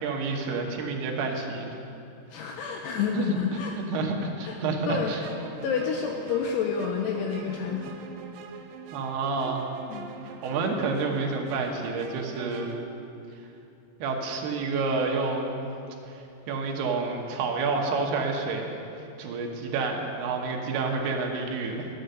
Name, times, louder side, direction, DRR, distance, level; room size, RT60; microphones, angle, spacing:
voice 1, 0.0-1.8 3.1-3.3 3.9-5.2 8.9-9.7 10.2-12.8 14.0-15.7 16.0-18.8 19.2-21.9, right 4 dB, 70° right, 1 dB, 2.7 m, -29 dB
voice 2, 2.3-4.0 4.4-4.6 4.9-5.1 5.6-7.9 9.9-10.2, left 6 dB, 80° left, 1 dB, 2.5 m, -29 dB
sound 1, 5.2-12.9, right 6 dB, 90° right, 3.2 m, -43 dB
13.0 x 9.2 x 6.6 m, 2.7 s
omnidirectional pair, 5.4 m